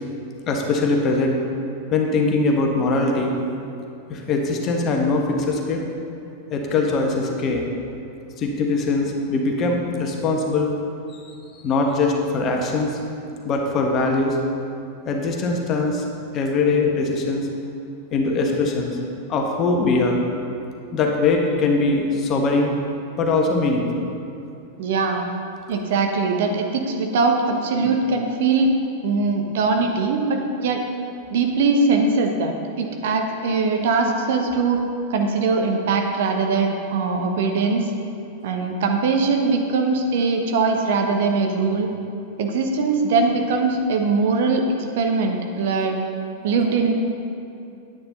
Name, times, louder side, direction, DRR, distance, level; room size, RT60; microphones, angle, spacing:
voice 1, 0.5-1.4 1.9-3.3 4.1-5.8 6.5-7.7 8.4-10.7 11.1-11.2 11.6-12.9 13.4-14.4 15.0-16.0 16.3-17.5 18.1-19.0 19.3-20.2 20.9-22.7 23.2-24.1, left 3 dB, 30° left, 1 dB, 1.4 m, -21 dB
voice 2, 24.8-25.2 25.7-28.7 29.0-30.8 31.3-34.8 35.1-37.9 38.4-41.9 42.4-44.6 45.0-46.0 46.4-46.9, right 4 dB, 55° right, 3 dB, 1.0 m, -21 dB
10.0 x 9.5 x 3.9 m, 2.7 s
figure-of-eight pair, 90°, 0 cm